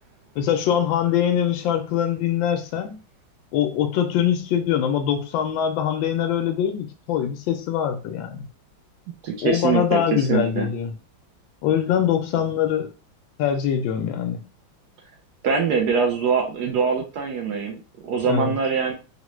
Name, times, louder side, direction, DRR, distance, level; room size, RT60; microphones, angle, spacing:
voice 1, 0.4-3.0 3.5-8.5 9.4-10.9 11.6-12.9 13.4-14.4 18.3-18.5, left 9 dB, 80° left, 5 dB, 1.3 m, -23 dB
voice 2, 9.2-10.7 15.4-18.9, right 6 dB, 75° right, 4 dB, 0.9 m, -23 dB
3.7 x 2.2 x 3.0 m, 0.33 s
omnidirectional pair, 2.2 m